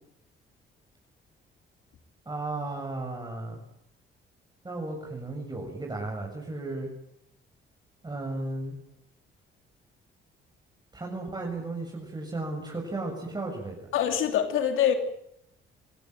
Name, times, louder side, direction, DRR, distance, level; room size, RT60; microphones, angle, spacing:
voice 1, 2.3-3.6 4.6-6.9 8.0-8.8 10.9-13.9, right 2 dB, 20° right, 1 dB, 7.0 m, -34 dB
voice 2, 13.9-14.9, left 9 dB, 90° left, 7 dB, 2.9 m, -24 dB
27.0 x 17.0 x 9.2 m, 0.75 s
cardioid pair, 90°, 20 cm